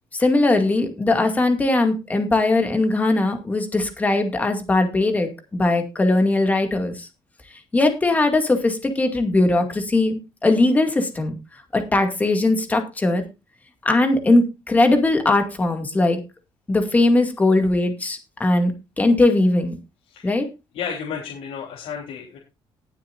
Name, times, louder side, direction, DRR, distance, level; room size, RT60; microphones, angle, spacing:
voice 1, 0.2-7.1 7.7-11.4 11.7-13.2 13.8-16.2 16.7-19.7 20.2-20.5, left 2 dB, 15° left, 5 dB, 2.1 m, -20 dB
voice 2, 20.7-22.4, left 7 dB, 85° left, -2 dB, 3.4 m, -32 dB
19.5 x 7.4 x 2.5 m, 0.27 s
cardioid pair, 175°, 10 cm